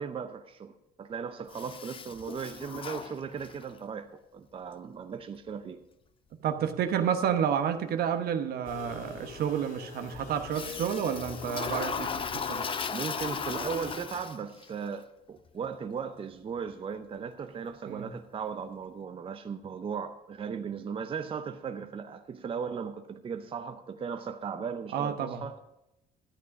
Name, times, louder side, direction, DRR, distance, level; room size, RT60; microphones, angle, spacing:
voice 1, 0.0-5.8 12.9-25.6, right 6 dB, 30° right, 0.6 m, -37 dB
Toilet flush, 1.5-3.8 10.5-14.7, left 6 dB, 30° left, 0.6 m, -36 dB
voice 2, 6.4-12.7 17.9-18.1 24.9-25.4, right 8 dB, 65° right, 1.0 m, -30 dB
sound 1, 8.6-14.0, left 3 dB, 60° left, 2.7 m, -44 dB
12.5 x 8.6 x 5.2 m
cardioid pair, 110°, 17 cm